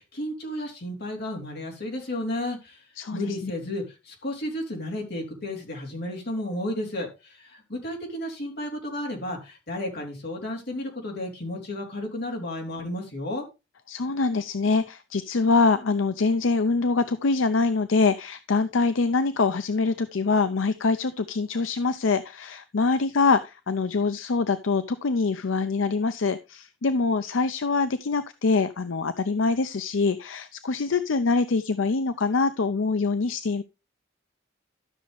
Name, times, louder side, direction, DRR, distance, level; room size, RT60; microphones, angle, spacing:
voice 1, 0.0-2.8 3.1-13.5, left 1 dB, 55° left, 3.6 m, -33 dB
voice 2, 3.0-3.5 13.9-33.6, left 4 dB, 75° left, 0.6 m, -24 dB
12.5 x 6.5 x 3.4 m
head